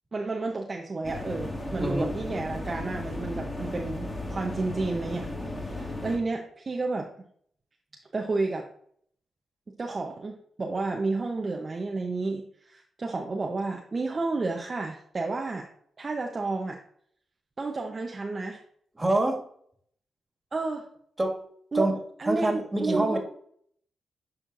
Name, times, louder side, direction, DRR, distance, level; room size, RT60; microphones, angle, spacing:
voice 1, 0.1-5.3 5.6-7.1 8.1-8.7 9.8-15.7 16.0-16.8 17.6-18.6 20.5-20.9 21.7-23.2, right 3 dB, 40° right, 1 dB, 0.8 m, -31 dB
sound 1, 1.0-6.2, left 1 dB, 25° left, 1.8 m, -35 dB
voice 2, 19.0-19.4 21.2-21.4 21.7-21.9 22.2-23.2, right 2 dB, 25° right, 1 dB, 2.0 m, -26 dB
11.0 x 4.3 x 2.6 m, 0.63 s
supercardioid pair, 45°, 0 cm